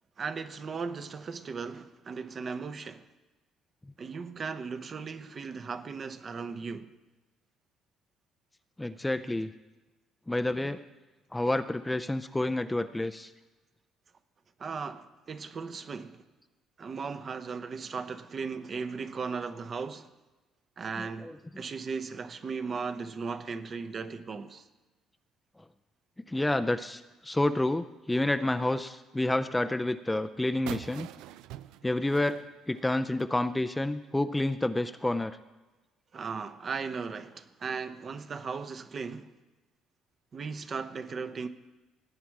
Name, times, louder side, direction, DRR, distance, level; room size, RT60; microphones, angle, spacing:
voice 1, 0.2-3.0 4.0-6.9 14.6-16.2 16.8-20.1 20.8-24.6 36.1-39.3 40.3-41.5, right 5 dB, 40° right, 0.8 m, -37 dB
voice 2, 8.8-9.5 10.3-10.8 11.3-13.3 21.0-21.3 26.3-31.1 31.8-32.4 32.7-35.4, left 1 dB, 10° left, 0.4 m, -29 dB
sound 1, 30.7-33.4, right 13 dB, 90° right, 0.4 m, -44 dB
17.5 x 8.6 x 4.7 m
cardioid pair, 115°, 0 cm